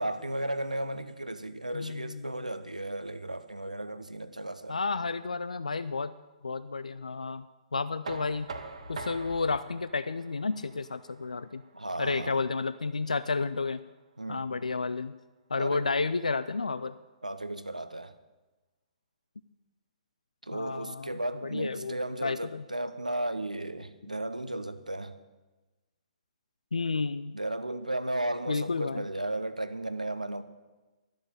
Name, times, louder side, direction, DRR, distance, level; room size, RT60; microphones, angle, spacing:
voice 1, 0.0-4.8 11.7-12.4 14.2-14.4 15.5-15.9 17.2-18.1 20.4-25.2 27.3-30.4, right 1 dB, 85° right, 0.9 m, -35 dB
voice 2, 1.7-2.5 4.7-6.1 6.4-7.5 7.7-8.5 8.9-11.6 12.0-13.8 14.3-15.1 15.5-17.0 20.5-22.6 26.7-27.4 28.5-29.1, left 4 dB, 75° left, 0.4 m, -31 dB
Knock, 8.0-13.8, right 3 dB, 60° right, 1.2 m, -45 dB
12.5 x 7.6 x 9.1 m
figure-of-eight pair, 120°, 4 cm